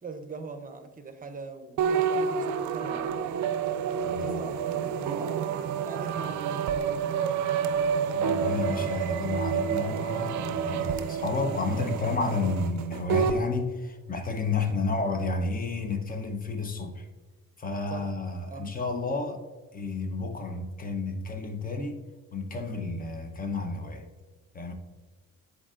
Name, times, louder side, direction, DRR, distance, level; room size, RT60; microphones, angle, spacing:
voice 1, 0.0-3.4 4.1-5.4 5.8-7.2 7.4-7.5 17.9-18.1 18.5-18.7, right 4 dB, 30° right, 7 dB, 0.7 m, -42 dB
sound 1, 1.8-13.4, right 7 dB, 70° right, 0.5 m, -29 dB
voice 2, 4.0-4.5 6.1-6.3 8.1-17.1 17.6-19.4 19.7-22.0 22.3-24.1 24.5-24.7, left 3 dB, 30° left, 6 dB, 0.9 m, -31 dB
9.9 x 3.9 x 2.5 m, 1.4 s
cardioid pair, 90°, 30 cm